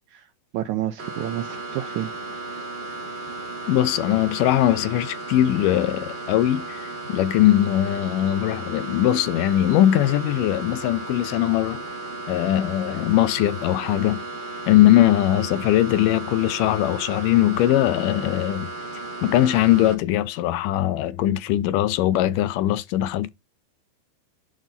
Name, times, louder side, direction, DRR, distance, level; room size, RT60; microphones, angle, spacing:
voice 1, 0.1-2.1, right 12 dB, 80° right, 1.7 m, -30 dB
sound 1, 1.0-19.9, right 3 dB, 25° right, 1.1 m, -35 dB
voice 2, 3.7-11.8 12.3-14.2 14.7-18.7 19.2-23.3, left 13 dB, 80° left, 2.0 m, -20 dB
11.5 x 3.9 x 3.9 m
omnidirectional pair, 4.0 m